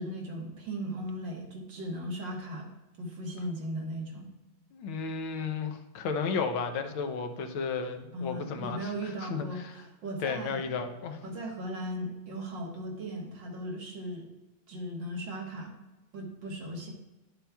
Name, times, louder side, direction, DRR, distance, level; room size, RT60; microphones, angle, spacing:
voice 1, 0.0-2.7 3.0-4.3 8.1-10.8 11.2-14.3 14.7-15.7 16.1-16.9, right 1 dB, 65° right, -1 dB, 2.0 m, -37 dB
voice 2, 4.7-9.7 10.2-11.2, left 5 dB, 85° left, 7 dB, 1.6 m, -33 dB
11.5 x 7.2 x 2.3 m, 1.1 s
omnidirectional pair, 2.2 m